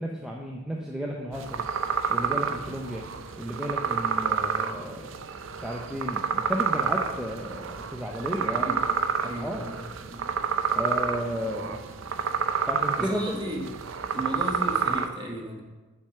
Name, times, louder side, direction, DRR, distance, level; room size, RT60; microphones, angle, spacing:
voice 1, 0.0-1.6 2.1-3.0 3.4-5.1 5.6-8.8 9.4-9.7 10.7-11.8 12.7-13.4, equal, 5° right, -2 dB, 0.6 m, -33 dB
sound 1, 1.3-15.1, right 6 dB, 65° right, 0.5 m, -29 dB
voice 2, 8.6-9.0 9.2-9.8 10.1-10.3 13.0-13.7 14.1-15.6, right 1 dB, 20° right, 0 dB, 1.2 m, -35 dB
6.7 x 6.6 x 5.6 m, 1.2 s
head